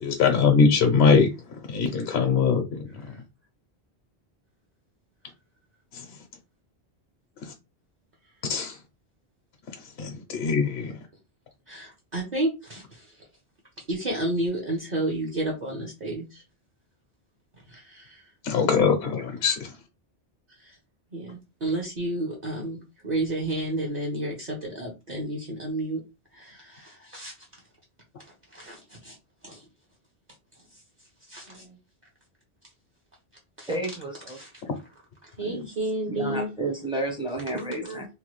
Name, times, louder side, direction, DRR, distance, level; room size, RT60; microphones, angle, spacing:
voice 1, 0.0-1.3 1.7-2.6 8.5-8.7 10.0-10.9 18.4-19.7, left 5 dB, 70° left, 0.8 m, -21 dB
voice 2, 11.7-13.0 13.9-16.4 17.7-18.2 20.6-20.7 21.1-26.0 26.3-27.3 28.5-29.2 29.4-29.6 31.3-31.8 33.6-33.7 34.4-34.5 35.4-36.5, right 1 dB, 45° right, 0.9 m, -31 dB
voice 3, 33.7-34.7 35.4-35.7 36.1-38.1, right 2 dB, 5° right, 0.6 m, -31 dB
3.0 x 2.2 x 3.1 m
omnidirectional pair, 1.1 m